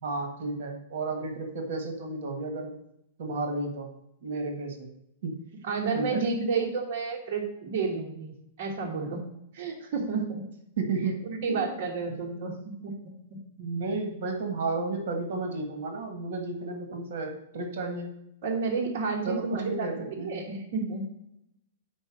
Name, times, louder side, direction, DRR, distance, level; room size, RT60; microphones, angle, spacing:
voice 1, 0.0-2.7 3.2-3.9 4.2-4.9 5.2-5.4 5.9-6.2 10.8-11.7 13.6-18.1 19.2-20.3, right 3 dB, 60° right, 4 dB, 1.6 m, -32 dB
voice 2, 5.6-9.2 9.5-10.4 11.4-12.9 18.4-21.0, right 4 dB, 45° right, -2 dB, 1.4 m, -31 dB
5.3 x 4.7 x 6.1 m, 0.79 s
supercardioid pair, 170°, 0 cm